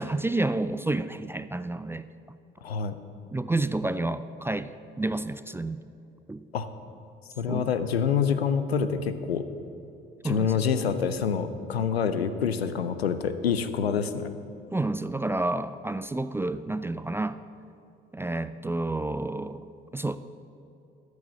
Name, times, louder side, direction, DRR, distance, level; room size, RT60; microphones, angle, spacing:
voice 1, 0.0-2.0 3.3-4.7 5.0-5.8 6.3-6.4 7.5-7.7 10.2-10.7 14.7-17.4 18.1-19.6 19.9-20.2, right 2 dB, 10° right, 13 dB, 0.3 m, -29 dB
voice 2, 2.6-2.9 6.5-6.7 7.4-9.4 10.2-14.3, left 7 dB, 85° left, 11 dB, 0.6 m, -26 dB
13.5 x 6.4 x 7.3 m, 2.8 s
figure-of-eight pair, 50°, 30 cm